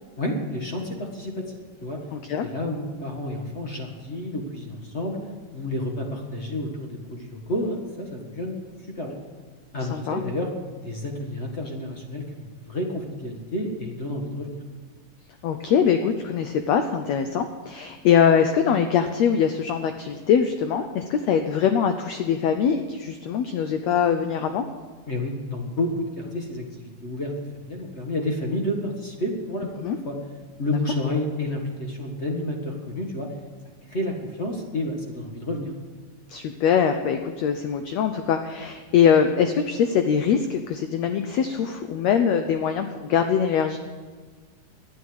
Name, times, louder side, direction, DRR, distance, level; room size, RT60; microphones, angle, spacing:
voice 1, 0.2-2.0 2.4-5.2 5.5-8.5 9.0-9.2 9.7-10.5 10.8-14.6 25.1-27.3 27.6-30.2 30.6-33.3 33.9-35.7, left 1 dB, 40° left, 1 dB, 0.9 m, -30 dB
voice 2, 2.1-2.5 9.9-10.2 15.4-24.6 29.8-30.0 36.3-43.8, left 7 dB, 80° left, 7 dB, 1.5 m, -22 dB
12.5 x 9.6 x 7.9 m, 1.4 s
omnidirectional pair, 3.9 m